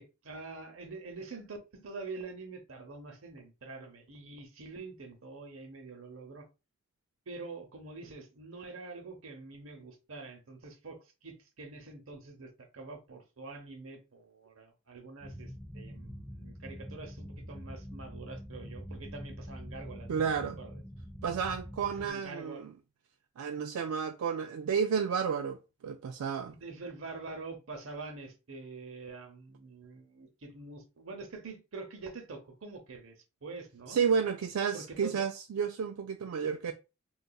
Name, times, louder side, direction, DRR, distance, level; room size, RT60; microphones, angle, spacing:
voice 1, 0.0-6.5 7.3-20.2 20.6-20.8 22.0-22.7 26.5-34.0 34.7-35.3 36.6-36.7, right 3 dB, 65° right, 0.8 m, -46 dB
sound 1, 15.2-22.1, equal, ahead, 0.5 m, -45 dB
voice 2, 20.1-20.6 21.2-22.7 23.4-26.5 33.9-36.7, right 6 dB, 85° right, 0.3 m, -31 dB
3.9 x 2.4 x 2.3 m
head